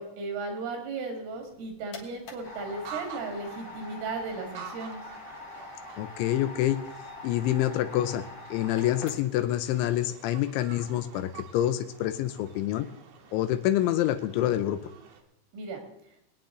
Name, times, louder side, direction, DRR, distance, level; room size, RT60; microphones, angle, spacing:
voice 1, 0.0-5.0 15.5-15.8, right 3 dB, 85° right, 3 dB, 4.7 m, -36 dB
sound 1, 1.4-9.5, left 3 dB, 60° left, 1.7 m, -44 dB
sound 2, 2.4-15.2, right 7 dB, 65° right, 2.2 m, -49 dB
voice 2, 6.0-6.8 7.2-12.9 13.3-14.8, left 13 dB, 80° left, 10 dB, 2.8 m, -27 dB
23.0 x 9.4 x 3.8 m, 0.79 s
omnidirectional pair, 5.6 m